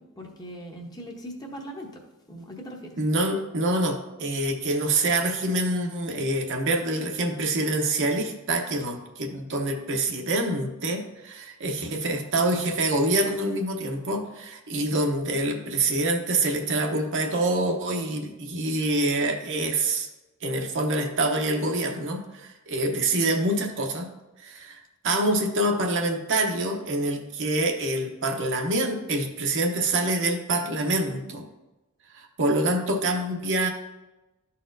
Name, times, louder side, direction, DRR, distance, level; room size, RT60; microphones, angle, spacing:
voice 1, 0.0-2.0 2.3-3.0, equal, 20° left, 1 dB, 0.8 m, -40 dB
voice 2, 3.0-20.1 20.4-24.1 24.4-31.4 32.1-33.7, right 2 dB, 55° right, 3 dB, 0.8 m, -26 dB
12.5 x 4.2 x 2.6 m, 1.0 s
head